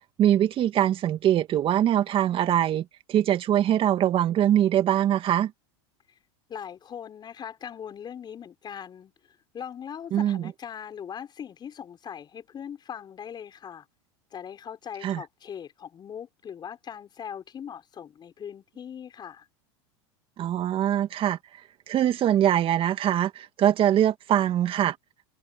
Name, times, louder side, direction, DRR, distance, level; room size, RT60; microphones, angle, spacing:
voice 1, 0.2-5.5 10.1-10.5 15.0-15.2 20.4-21.4 21.9-25.0, right 11 dB, 40° right, 2.2 m, -23 dB
voice 2, 6.5-9.1 9.5-13.9 14.3-19.5, left 8 dB, 30° left, 5.7 m, -40 dB
hypercardioid pair, 100°, 14 cm